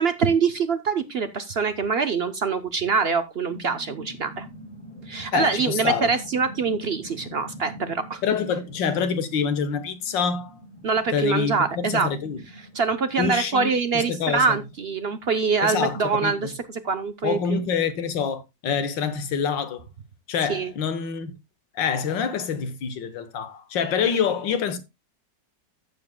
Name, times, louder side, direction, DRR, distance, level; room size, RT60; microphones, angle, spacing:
voice 1, 0.0-4.5 5.1-8.2 10.8-12.1 12.7-17.6 20.5-20.7, right 5 dB, 60° right, 0.6 m, -24 dB
sound 1, 3.1-17.3, right 1 dB, 5° right, 4.3 m, -45 dB
voice 2, 5.3-6.1 8.2-10.5 11.1-12.4 13.2-14.6 15.6-16.3 17.2-19.8 20.3-21.3 21.8-24.8, left 6 dB, 80° left, 1.8 m, -26 dB
15.0 x 7.1 x 2.2 m
omnidirectional pair, 1.9 m